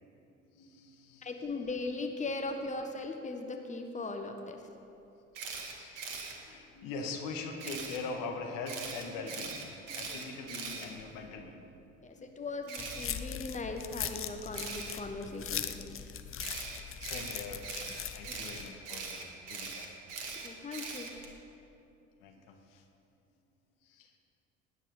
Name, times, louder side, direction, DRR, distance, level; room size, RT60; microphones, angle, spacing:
voice 1, 0.5-1.5 5.3-11.8 12.1-12.4 16.7-17.6 18.1-19.9 22.2-22.8 23.8-24.2, left 4 dB, 60° left, 3 dB, 1.7 m, -43 dB
voice 2, 1.2-4.6 12.0-16.0 20.4-21.1, left 3 dB, 20° left, 4 dB, 1.4 m, -39 dB
Camera, 5.3-6.3 7.6-8.0 8.7-11.4 12.7-13.1 14.5-14.9 16.4-21.3, right 5 dB, 70° right, 1.9 m, -41 dB
sound 1, 12.8-18.7, left 9 dB, 35° left, 0.9 m, -40 dB
19.0 x 10.0 x 5.3 m, 2.8 s
figure-of-eight pair, 55°, 37 cm